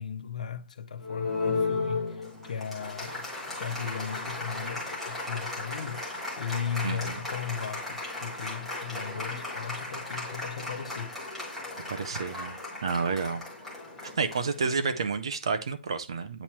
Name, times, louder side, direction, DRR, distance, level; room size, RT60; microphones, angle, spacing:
voice 1, 0.0-3.3 3.6-6.0 6.4-11.1, left 7 dB, 35° left, 0.6 m, -37 dB
Applause, 1.0-15.1, left 3 dB, ahead, 0.8 m, -35 dB
voice 2, 6.8-7.2 11.9-12.6 12.8-13.4 14.0-16.4, right 5 dB, 25° right, 0.3 m, -30 dB
8.6 x 3.0 x 4.2 m
hypercardioid pair, 180°, 7 cm